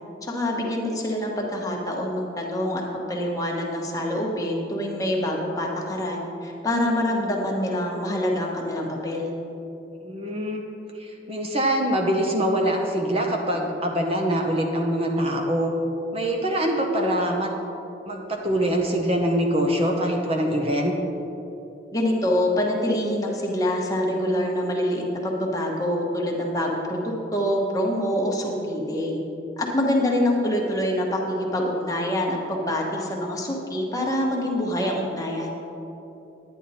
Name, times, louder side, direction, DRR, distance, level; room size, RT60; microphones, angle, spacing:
voice 1, 0.2-9.3 21.9-29.2 29.6-35.5, left 1 dB, 20° left, -2 dB, 1.3 m, -25 dB
voice 2, 10.0-10.6 10.9-15.7 16.1-17.5 18.1-20.9, right 1 dB, 30° right, 1 dB, 0.8 m, -24 dB
10.0 x 10.0 x 4.2 m, 2.9 s
head